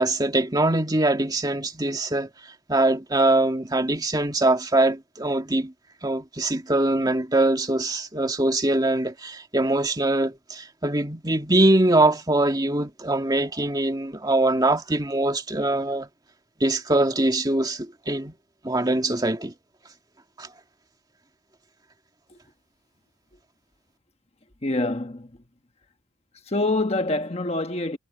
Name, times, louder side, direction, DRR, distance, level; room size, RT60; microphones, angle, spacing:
voice 1, 0.0-2.3 2.7-5.7 6.0-16.1 16.6-18.3 18.6-19.5 20.4-20.5, right 2 dB, 20° right, 2.1 m, -23 dB
voice 2, 24.6-25.3 26.4-28.0, left 2 dB, 30° left, 1.2 m, -26 dB
head